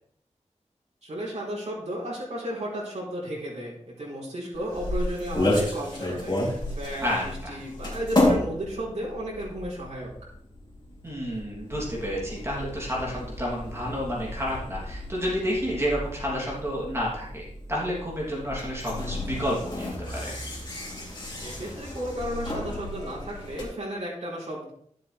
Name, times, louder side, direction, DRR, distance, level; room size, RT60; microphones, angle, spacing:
voice 1, 1.0-10.1 21.4-24.7, right 1 dB, 70° right, -7 dB, 4.1 m, -34 dB
sound 1, 4.5-23.6, left 1 dB, 35° left, 3.2 m, -32 dB
voice 2, 7.0-7.6 11.0-20.3, equal, 20° right, -5 dB, 3.1 m, -30 dB
12.5 x 7.7 x 3.5 m, 0.66 s
wide cardioid pair, 105°, 12 cm